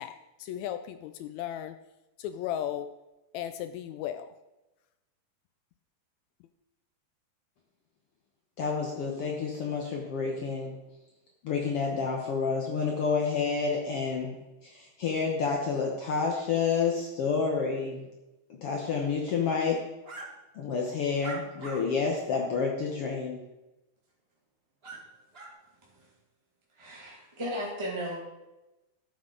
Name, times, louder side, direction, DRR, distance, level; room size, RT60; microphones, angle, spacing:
voice 1, 0.0-1.7 2.2-2.9 3.3-4.3, left 11 dB, 80° left, 10 dB, 1.7 m, -35 dB
voice 2, 8.6-10.8 11.4-14.4 14.6-18.1 18.6-19.8 20.5-23.4, left 5 dB, 60° left, 0 dB, 1.6 m, -29 dB
sound 1, 20.0-20.3 21.2-21.8 22.4-22.5 24.8-25.0 25.3-25.5, right 3 dB, 40° right, 0.8 m, -41 dB
voice 3, 26.8-28.2, equal, 10° right, -5 dB, 1.5 m, -35 dB
13.5 x 7.6 x 3.9 m, 1.0 s
omnidirectional pair, 3.6 m